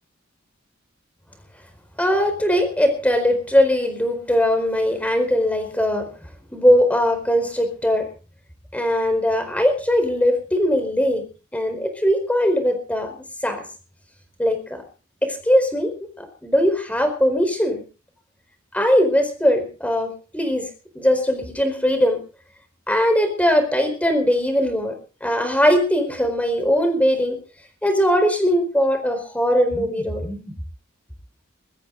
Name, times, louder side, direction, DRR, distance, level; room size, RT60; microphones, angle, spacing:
voice 1, 2.0-6.1 6.5-8.0 8.7-11.2 11.5-13.1 13.4-13.6 14.4-14.8 15.2-17.8 18.7-20.7 20.9-22.2 22.9-24.9 25.2-27.4 27.8-30.5, equal, 5° left, 7 dB, 4.5 m, -20 dB
22.0 x 14.0 x 3.9 m, 0.37 s
head